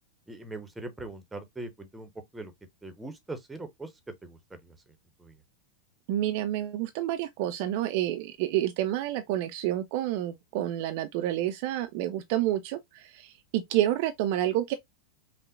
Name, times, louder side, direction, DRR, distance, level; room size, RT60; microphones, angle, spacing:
voice 1, 0.3-2.5 2.8-4.9 5.2-5.4, right 2 dB, 10° right, 0.8 m, -41 dB
voice 2, 6.1-14.7, right 13 dB, 45° right, 0.4 m, -29 dB
5.3 x 2.1 x 2.4 m
figure-of-eight pair, 90°, 0 cm